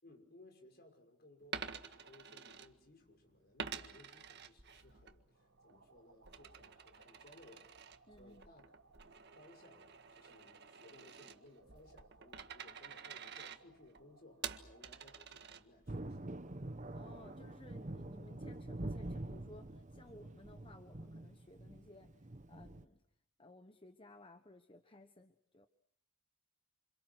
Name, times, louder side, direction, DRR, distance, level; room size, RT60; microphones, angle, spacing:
voice 1, 0.0-8.8 9.4-16.5, left 1 dB, 45° left, 4 dB, 6.0 m, -62 dB
Coin (dropping), 1.4-3.1 3.6-5.2 5.5-16.0, right 7 dB, 50° right, 1.7 m, -49 dB
sound 1, 5.3-15.3, right 3 dB, 75° right, 3.4 m, -67 dB
voice 2, 8.1-8.5 16.9-23.0 23.4-25.7, left 1 dB, 25° left, 8 dB, 1.2 m, -58 dB
Thunder, 15.9-22.9, right 1 dB, 35° right, 1.0 m, -46 dB
29.0 x 27.5 x 6.3 m, 0.72 s
head